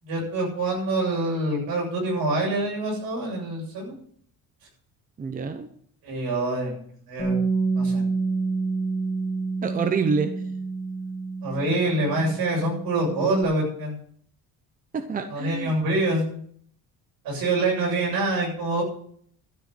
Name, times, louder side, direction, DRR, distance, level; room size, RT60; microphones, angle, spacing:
voice 1, 0.0-3.9 6.0-6.8 7.1-7.4 7.8-8.0 11.4-14.0 15.3-16.4 17.2-18.8, right 2 dB, 70° right, -1 dB, 7.4 m, -25 dB
voice 2, 5.2-5.7 9.6-10.3 14.9-15.8, right 5 dB, 20° right, 7 dB, 0.8 m, -27 dB
Bass guitar, 7.2-13.4, right 4 dB, 25° left, 3.5 m, -28 dB
13.0 x 6.4 x 9.2 m, 0.62 s
cardioid pair, 165°, 37 cm